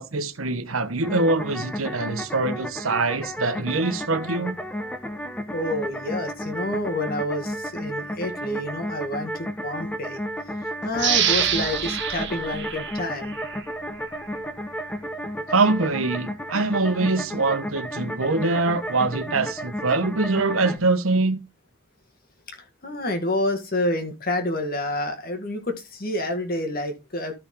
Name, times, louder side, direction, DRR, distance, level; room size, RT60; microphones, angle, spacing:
voice 1, 0.0-4.6 15.5-21.4, right 3 dB, 85° right, 1.2 m, -24 dB
sound 1, 1.0-20.8, equal, 5° left, 1.0 m, -33 dB
voice 2, 5.5-10.2 10.6-13.4 22.8-27.3, left 1 dB, 45° left, 1.9 m, -28 dB
sound 2, 11.0-13.6 14.1-14.2, right 9 dB, 55° right, 1.6 m, -26 dB
13.0 x 5.7 x 3.7 m
head